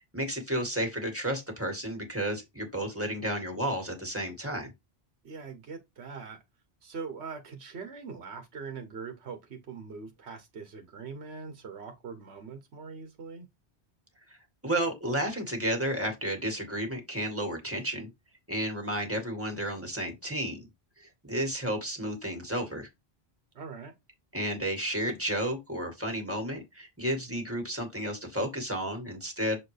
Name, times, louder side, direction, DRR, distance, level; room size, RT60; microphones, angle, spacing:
voice 1, 0.1-4.7 14.6-18.1 18.5-20.7 21.2-22.9 24.3-29.6, right 1 dB, 15° right, 1.9 m, -32 dB
voice 2, 5.2-6.4 6.8-13.5 23.5-23.9, right 5 dB, 90° right, 1.3 m, -42 dB
7.1 x 4.3 x 3.3 m
omnidirectional pair, 1.1 m